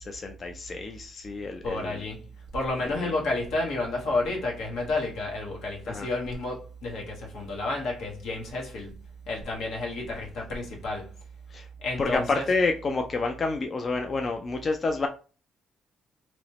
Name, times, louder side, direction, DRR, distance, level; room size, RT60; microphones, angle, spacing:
voice 1, 0.1-2.0 2.9-3.1 5.9-6.1 11.5-11.7 12.0-15.1, left 3 dB, 40° left, 0.4 m, -29 dB
voice 2, 1.6-9.0 9.3-11.1 11.8-12.5, left 2 dB, 80° left, 1.0 m, -31 dB
3.0 x 2.0 x 2.8 m
cardioid pair, 90°, 0 cm